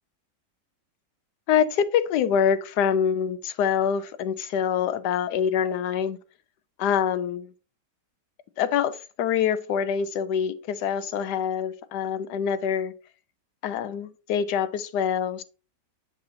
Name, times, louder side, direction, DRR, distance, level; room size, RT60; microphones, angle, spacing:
voice 1, 1.5-6.2 6.8-7.5 8.6-12.9 13.6-15.4, left 8 dB, 75° left, 1.2 m, -25 dB
7.6 x 6.1 x 2.6 m
omnidirectional pair, 1.9 m